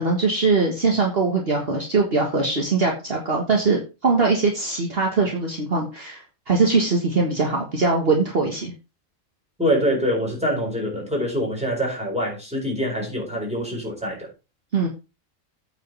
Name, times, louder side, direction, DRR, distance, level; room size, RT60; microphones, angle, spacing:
voice 1, 0.0-8.7 14.7-14.9, right 3 dB, 50° right, 0 dB, 1.8 m, -21 dB
voice 2, 9.6-14.3, equal, 5° right, -2 dB, 4.7 m, -25 dB
8.9 x 5.1 x 5.5 m, 0.29 s
omnidirectional pair, 1.4 m